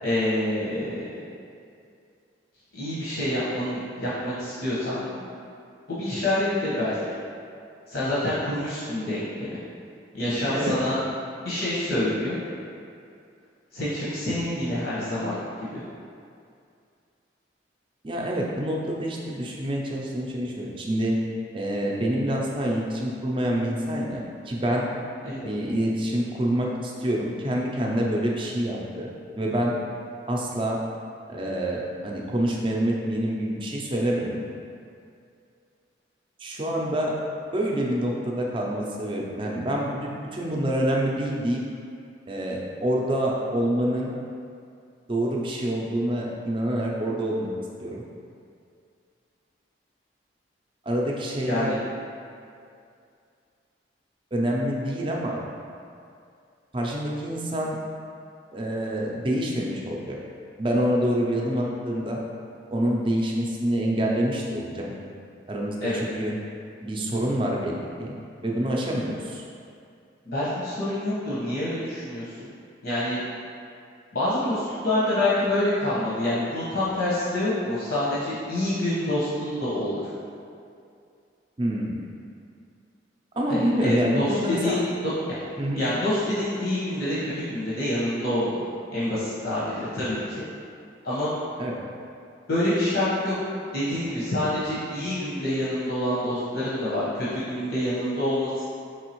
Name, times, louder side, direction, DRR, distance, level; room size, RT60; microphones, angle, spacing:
voice 1, 0.0-1.0 2.7-5.3 5.9-7.0 7.9-9.6 10.1-11.0 11.4-12.4 13.7-15.8 25.2-25.5 51.4-51.8 65.8-66.0 70.2-72.5 72.8-73.2 74.1-80.0 83.5-85.1 85.7-90.4 91.0-91.3 92.5-93.3 93.7-98.7, left 1 dB, 70° left, -10 dB, 1.1 m, -27 dB
voice 2, 10.3-10.8 18.0-21.2 21.5-24.9 25.4-29.1 29.3-29.7 30.3-30.8 31.3-34.4 36.4-37.1 37.5-41.6 42.3-44.1 45.1-47.5 47.8-48.0 50.9-51.8 54.3-55.4 56.7-57.8 58.5-60.2 60.6-62.2 62.7-64.9 65.5-66.3 66.8-68.2 68.4-69.4 81.6-82.0 83.4-84.8 85.6-85.8 91.6-91.8, right 1 dB, 25° right, -2 dB, 0.5 m, -26 dB
4.8 x 3.4 x 3.0 m, 2.4 s
head